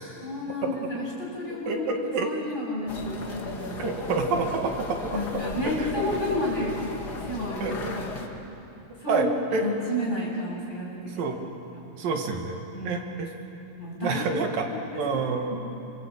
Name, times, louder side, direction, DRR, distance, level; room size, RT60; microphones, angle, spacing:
voice 1, 0.2-1.9 2.2-3.8 5.1-8.3 9.0-9.3 9.6-11.1 11.7-11.9 12.7-13.1 13.5-14.3 14.9-15.6, left 1 dB, 15° left, -5 dB, 8.0 m, -31 dB
voice 2, 1.7-2.3 3.8-5.1 5.8-5.9 7.6-7.9 9.1-9.6 11.0-11.4 11.9-13.3 14.0-14.7 15.0-15.5, right 4 dB, 80° right, 3 dB, 3.9 m, -28 dB
sound 1, 2.9-8.3, left 3 dB, 35° left, 1.9 m, -35 dB
26.5 x 25.5 x 8.7 m, 2.9 s
omnidirectional pair, 4.0 m